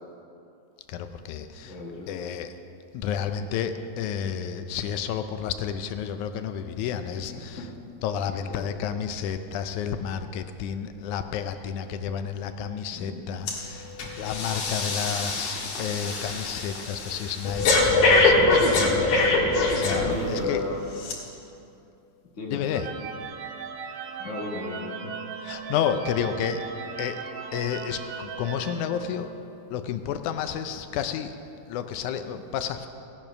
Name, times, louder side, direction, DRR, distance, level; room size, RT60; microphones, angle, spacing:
voice 1, 0.9-1.8 2.1-2.5 2.9-7.7 8.0-13.9 14.2-19.0 19.8-20.7 22.5-22.9 25.4-26.6 27.0-27.2 27.5-29.3 29.7-31.3 31.7-32.9, left 8 dB, 80° left, 9 dB, 2.0 m, -31 dB
voice 2, 1.6-2.1 7.3-7.7 8.5-8.7 12.9-13.4 18.7-19.3 19.9-20.8 22.3-22.6 24.2-25.1, left 2 dB, 40° left, -3 dB, 1.0 m, -36 dB
Breathing, 13.5-13.7 14.0-20.4 21.0-21.1, left 2 dB, 60° left, 2.5 m, -23 dB
sound 1, 22.6-29.6, right 6 dB, 85° right, 1.2 m, -38 dB
16.5 x 8.9 x 5.8 m, 2.7 s
omnidirectional pair, 3.7 m